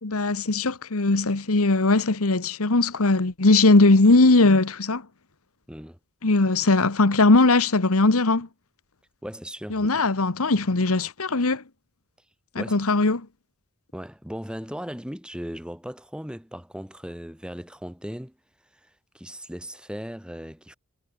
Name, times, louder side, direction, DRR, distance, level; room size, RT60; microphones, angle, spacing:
voice 1, 0.0-5.0 6.2-8.5 9.7-11.6 12.5-13.3, left 2 dB, 70° left, 1.3 m, -19 dB
voice 2, 5.7-6.0 9.2-9.9 12.5-12.8 13.9-18.3 18.8-18.9 19.1-20.7, equal, 5° right, 2.9 m, -37 dB
head